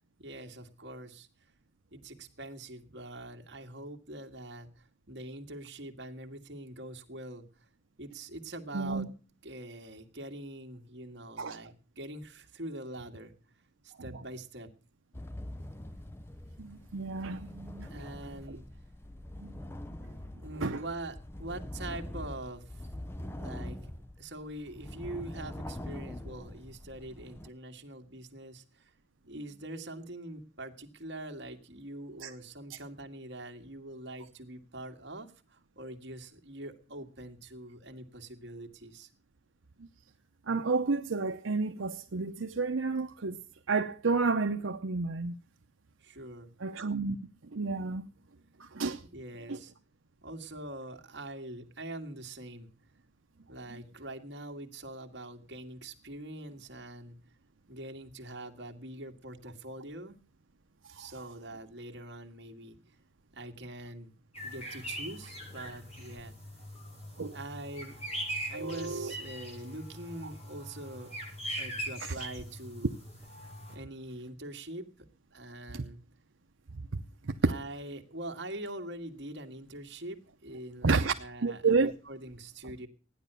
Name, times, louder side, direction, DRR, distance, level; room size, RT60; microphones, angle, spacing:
voice 1, 0.2-1.5 1.9-7.7 8.0-9.1 9.4-13.3 13.8-14.7 17.9-18.6 20.4-22.8 23.3-23.8 24.2-28.9 29.3-39.1 46.0-46.5 49.1-49.7 50.2-52.7 53.5-57.2 57.7-60.2 61.0-62.8 63.3-64.1 64.4-66.3 67.3-68.0 68.5-71.1 71.6-73.0 73.7-75.1 75.3-76.0 77.4-82.9, right 1 dB, 60° right, 2.0 m, -44 dB
voice 2, 8.7-9.1 11.4-11.6 16.6-17.9 19.4-19.5 20.6-20.8 32.2-32.3 39.8-39.9 40.5-43.4 43.7-45.4 46.6-47.2 47.5-48.0 48.6-49.0 49.5-49.6 53.7-53.8 60.8-61.1 67.2-67.4 68.5-69.1 72.0-72.1 77.2-77.5 80.8-81.1 81.4-81.9, right 4 dB, 85° right, 0.8 m, -30 dB
sound 1, 15.1-27.5, left 1 dB, 10° left, 0.7 m, -43 dB
sound 2, 64.3-73.8, equal, 30° left, 6.1 m, -41 dB
14.5 x 10.0 x 6.8 m
head